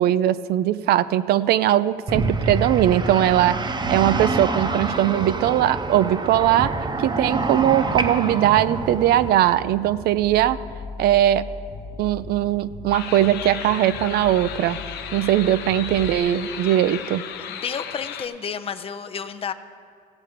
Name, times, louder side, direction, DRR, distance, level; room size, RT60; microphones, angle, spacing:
voice 1, 0.0-6.7 7.0-10.6 11.0-11.5 12.0-14.8 15.1-17.2, right 12 dB, 70° right, 15 dB, 0.4 m, -20 dB
sound 1, 2.1-9.3, right 3 dB, 25° right, 0.8 m, -26 dB
sound 2, 8.2-16.2, left 2 dB, 50° left, 0.9 m, -39 dB
sound 3, 12.9-18.3, left 9 dB, 75° left, 0.7 m, -35 dB
voice 2, 17.4-19.5, left 7 dB, 35° left, 10 dB, 0.5 m, -31 dB
15.0 x 7.0 x 4.9 m, 2.3 s
cardioid pair, 110°, 17 cm